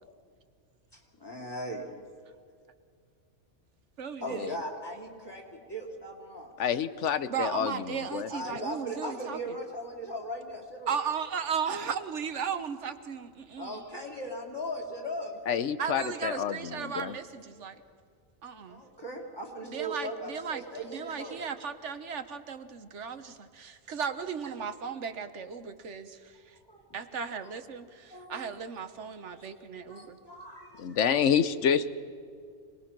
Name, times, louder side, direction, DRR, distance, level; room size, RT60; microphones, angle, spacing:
voice 1, 0.9-1.8 4.2-6.5 8.3-10.9 13.6-15.6 18.7-21.4 26.3-26.8 27.4-27.5 28.1-28.5 29.2-29.4 29.9-31.0 31.7-31.8, equal, 20° left, 0 dB, 3.1 m, -39 dB
voice 2, 4.0-4.5 7.3-9.6 10.9-13.8 15.8-17.8 18.4-18.8 19.7-26.5 26.9-30.2, right 6 dB, 80° right, 10 dB, 1.4 m, -36 dB
voice 3, 6.6-8.3 15.5-17.1 30.8-31.9, left 8 dB, 85° left, 13 dB, 1.1 m, -28 dB
26.5 x 20.0 x 6.0 m, 2.2 s
omnidirectional pair, 1.2 m